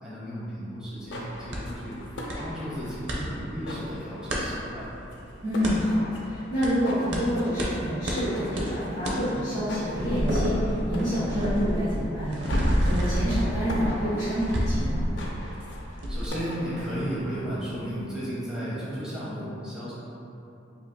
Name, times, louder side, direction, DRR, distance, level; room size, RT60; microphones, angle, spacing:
voice 1, 0.0-2.0 2.3-4.9 16.1-19.9, equal, 5° right, -10 dB, 0.8 m, -34 dB
sound 1, 0.9-18.2, left 1 dB, 70° left, 0.5 m, -42 dB
sound 2, 1.5-1.6 2.3-2.4 2.7-3.2 4.3-4.4 5.6-5.8 6.6-6.7 7.1-7.2 7.6-7.7 8.1-8.2 8.6-8.7 9.0-9.2 9.6-15.7 16.0-16.3, equal, 70° right, 0.6 m, -28 dB
voice 2, 5.4-10.6 10.9-15.0, equal, 20° right, -16 dB, 1.5 m, -28 dB
5.4 x 2.8 x 2.2 m, 2.9 s
head